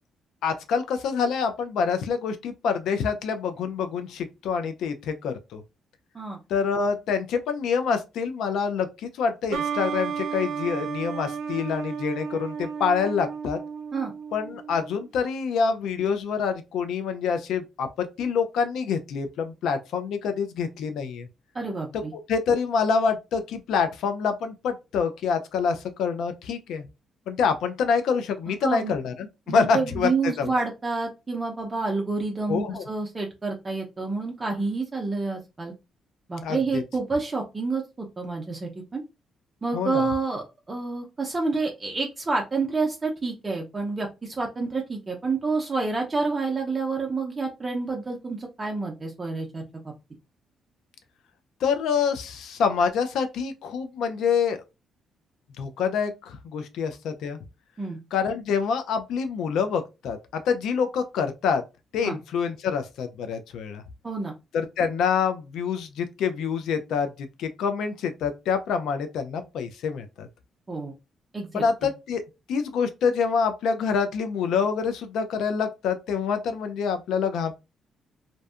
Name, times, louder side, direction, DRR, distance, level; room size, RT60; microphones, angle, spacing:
voice 1, 0.4-5.6 6.5-13.6 14.3-21.3 22.3-26.9 27.3-30.5 32.5-32.8 36.4-36.8 39.7-40.0 51.6-54.6 55.6-57.4 58.1-61.6 61.9-63.8 64.5-67.1 67.4-70.3 71.5-72.2 72.5-77.5, left 6 dB, 80° left, 0.3 m, -26 dB
sound 1, 9.5-15.0, right 6 dB, 80° right, 0.4 m, -33 dB
voice 2, 21.5-22.1 28.6-28.9 29.5-35.7 36.3-39.0 39.6-49.9 57.8-58.0 62.0-62.2 64.0-64.3 70.7-70.9 71.3-71.9, right 3 dB, 25° right, 0.5 m, -28 dB
2.5 x 2.2 x 2.3 m
cardioid pair, 90°, 0 cm